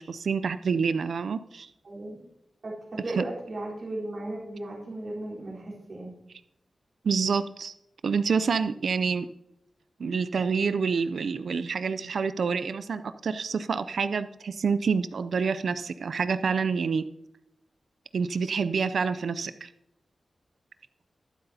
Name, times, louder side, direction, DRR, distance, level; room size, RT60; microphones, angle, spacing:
voice 1, 0.0-1.7 3.2-3.3 7.0-7.7 8.0-9.3 10.0-17.0 18.1-19.7, right 5 dB, 75° right, 13 dB, 0.3 m, -27 dB
voice 2, 1.8-2.2 2.6-6.1, right 1 dB, 55° right, -6 dB, 3.7 m, -36 dB
21.0 x 7.8 x 2.7 m, 0.83 s
wide cardioid pair, 130°, 0 cm